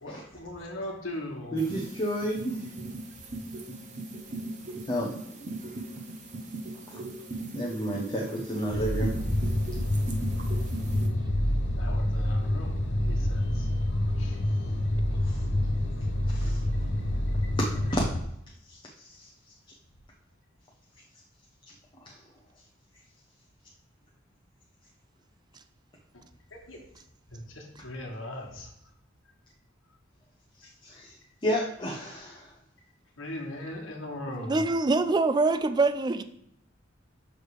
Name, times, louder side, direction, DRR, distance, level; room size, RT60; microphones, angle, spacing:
voice 1, 0.0-1.6 11.8-12.8 13.1-13.5 14.2-14.4 26.7-26.8 27.3-28.7 33.2-34.6, left 1 dB, 80° left, -1 dB, 1.4 m, -38 dB
voice 2, 1.5-2.6 4.9-5.4 7.5-9.1 15.2-15.4 16.3-16.6 17.6-18.0 18.7-19.3 22.0-22.1 30.8-31.1 31.4-32.5, equal, 25° left, -2 dB, 0.7 m, -31 dB
sound 1, 1.6-11.1, right 2 dB, 40° right, 0.9 m, -39 dB
sound 2, 8.7-18.2, left 1 dB, 65° left, 0.7 m, -27 dB
voice 3, 34.4-36.2, right 3 dB, 20° right, 11 dB, 0.3 m, -24 dB
6.3 x 3.2 x 4.9 m, 0.75 s
head